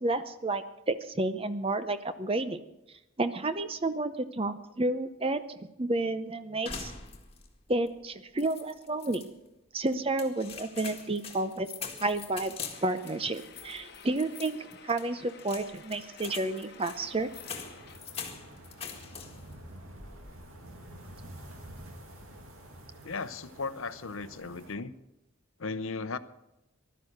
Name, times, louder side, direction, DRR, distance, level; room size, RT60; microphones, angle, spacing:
voice 1, 0.0-2.6 3.2-6.9 7.7-9.3 9.7-11.7 12.0-14.6 14.8-17.3, right 2 dB, 25° right, 11 dB, 0.7 m, -31 dB
sound 1, 6.7-7.6 7.9-8.0 8.4-9.3 9.9-19.6 19.9-20.4, left 6 dB, 25° left, 1.9 m, -43 dB
sound 2, 12.7-18.0, left 5 dB, 50° left, 1.1 m, -52 dB
sound 3, 16.9-24.8, right 1 dB, 90° right, 2.4 m, -49 dB
voice 2, 23.0-24.9 25.6-26.2, left 4 dB, 75° left, 14 dB, 0.7 m, -36 dB
15.5 x 12.0 x 6.5 m, 0.93 s
head